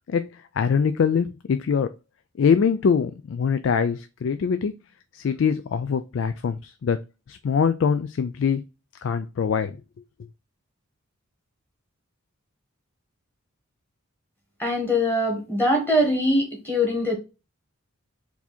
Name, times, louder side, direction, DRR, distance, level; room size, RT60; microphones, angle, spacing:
voice 1, 0.1-1.9 2.4-4.7 5.1-7.0 7.3-8.6 9.0-9.8, left 6 dB, 60° left, 0.3 m, -23 dB
voice 2, 14.6-17.2, left 1 dB, 10° left, 1.6 m, -22 dB
4.5 x 2.8 x 4.2 m
head